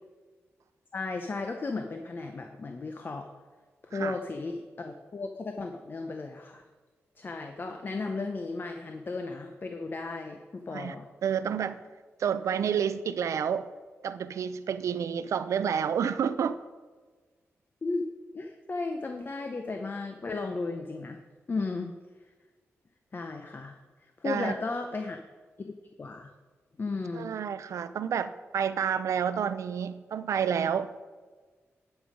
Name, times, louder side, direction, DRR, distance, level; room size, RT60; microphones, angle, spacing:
voice 1, 0.9-3.3 3.9-6.6 7.2-11.1 17.8-18.0 18.3-21.2 21.5-21.9 23.1-23.7 24.2-25.2 25.6-25.7 26.0-26.3 26.8-27.3, left 3 dB, 40° left, 5 dB, 0.7 m, -35 dB
voice 2, 11.2-11.8 12.2-13.6 14.0-16.6 24.2-24.5 27.1-30.9, right 7 dB, 80° right, 13 dB, 0.5 m, -29 dB
11.5 x 5.3 x 5.0 m, 1.4 s
cardioid pair, 80°, 5 cm